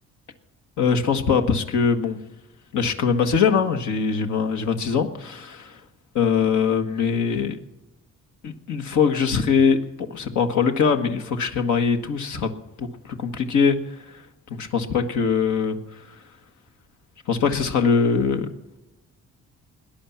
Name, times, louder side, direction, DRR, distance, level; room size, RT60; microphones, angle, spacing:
voice 1, 0.8-2.2 2.7-5.8 6.1-7.6 8.4-9.8 10.1-12.5 12.8-14.2 14.5-16.2 17.3-18.5, left 6 dB, 75° left, 6 dB, 1.6 m, -22 dB
18.5 x 10.5 x 7.3 m, 0.94 s
cardioid pair, 90°, 30 cm